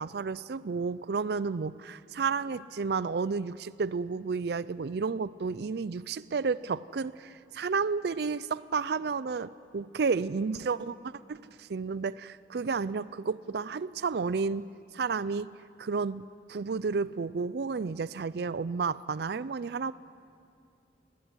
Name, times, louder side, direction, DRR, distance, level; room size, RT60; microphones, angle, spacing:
voice 1, 0.0-14.7 14.9-15.5 15.8-19.9, right 5 dB, 60° right, 17 dB, 0.4 m, -31 dB
20.0 x 18.0 x 9.6 m, 2.5 s
head